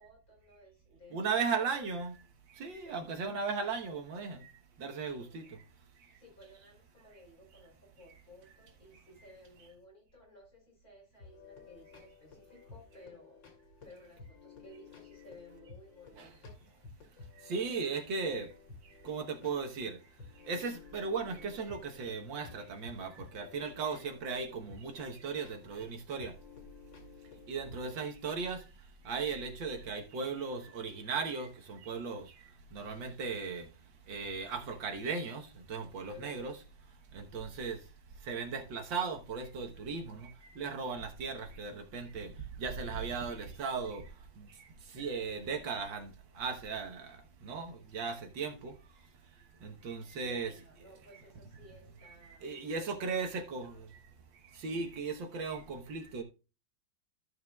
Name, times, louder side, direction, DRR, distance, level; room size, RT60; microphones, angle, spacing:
voice 1, 0.0-1.5 2.8-3.1 5.0-5.5 6.1-16.5 27.9-28.1 36.1-36.5 50.1-53.3 53.7-53.9, left 1 dB, 50° left, 4.9 m, -57 dB
voice 2, 1.1-2.2 2.6-4.5 4.8-5.6 16.2-16.3 17.4-18.5 19.0-20.0 20.5-26.3 27.5-28.6 29.1-32.3 32.7-33.7 34.1-36.6 37.1-37.8 38.3-42.3 42.6-44.0 44.9-47.2 47.4-48.7 49.6-50.5 52.2-53.7 54.6-56.2, right 5 dB, 80° right, 1.9 m, -37 dB
sound 1, 11.2-28.1, left 5 dB, 75° left, 2.8 m, -54 dB
14.0 x 6.5 x 2.3 m
omnidirectional pair, 2.0 m